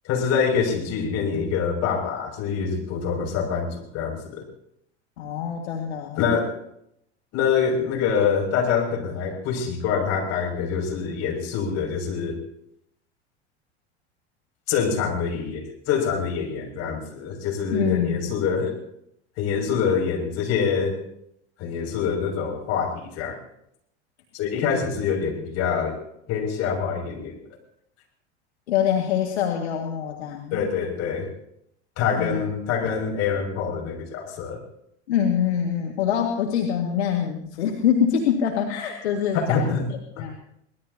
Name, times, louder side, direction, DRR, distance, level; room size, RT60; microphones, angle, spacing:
voice 1, 0.0-4.4 6.2-6.5 7.3-12.4 14.7-18.8 19.4-21.0 21.6-23.4 24.3-26.0 26.3-27.3 30.5-31.3 32.0-34.6 39.3-39.8 40.2-40.3, left 6 dB, 50° left, 0 dB, 6.6 m, -25 dB
voice 2, 5.2-6.2 17.7-18.3 28.7-30.6 32.1-32.5 35.1-40.4, left 8 dB, 70° left, 1 dB, 2.0 m, -25 dB
24.5 x 19.5 x 2.8 m, 0.75 s
figure-of-eight pair, 80°, 34 cm